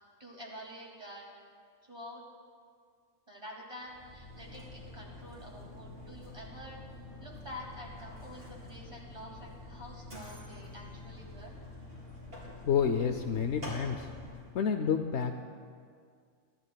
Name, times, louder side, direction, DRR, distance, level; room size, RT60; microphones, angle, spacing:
voice 1, 0.2-1.3 1.9-2.2 3.3-6.8 7.2-11.6, equal, 25° right, -3 dB, 2.3 m, -47 dB
Mechanisms, 3.8-14.6, left 2 dB, 45° right, 3.9 m, -47 dB
voice 2, 12.4-14.1 14.5-15.4, left 7 dB, 65° left, 6 dB, 0.8 m, -29 dB
24.5 x 11.5 x 2.3 m, 2.1 s
omnidirectional pair, 1.4 m